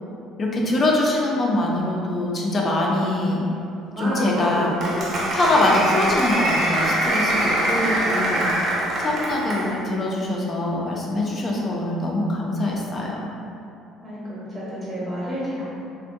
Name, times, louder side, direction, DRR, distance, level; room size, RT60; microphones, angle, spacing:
voice 1, 0.4-3.5 4.0-4.7 5.3-8.5 9.0-13.3, left 1 dB, 25° left, -2 dB, 0.4 m, -23 dB
Applause, 3.9-9.7, right 1 dB, 40° right, 0.6 m, -24 dB
voice 2, 14.0-15.7, equal, 10° right, -10 dB, 0.8 m, -31 dB
3.4 x 2.1 x 2.5 m, 2.8 s
cardioid pair, 150°, 0 cm